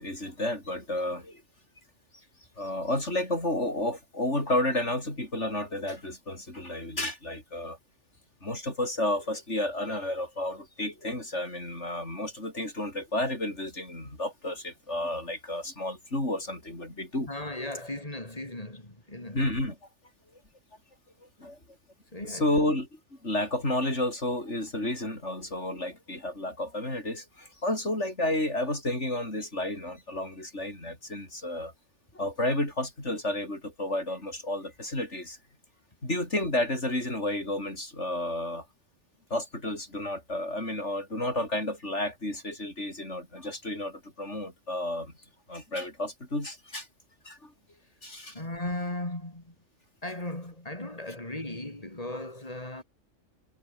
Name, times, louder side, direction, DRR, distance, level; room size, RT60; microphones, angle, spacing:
voice 1, 0.0-1.4 2.6-7.8 8.4-17.3 19.3-19.8 21.4-21.6 22.2-31.7 32.1-35.4 36.0-38.7 39.3-45.1 45.5-46.9 47.2-47.5 48.0-48.4, left 1 dB, 60° left, 8.2 m, -31 dB
voice 2, 17.3-19.4 22.1-22.6 48.3-49.5 50.0-52.8, left 1 dB, 25° left, 4.8 m, -37 dB
omnidirectional pair, 1.3 m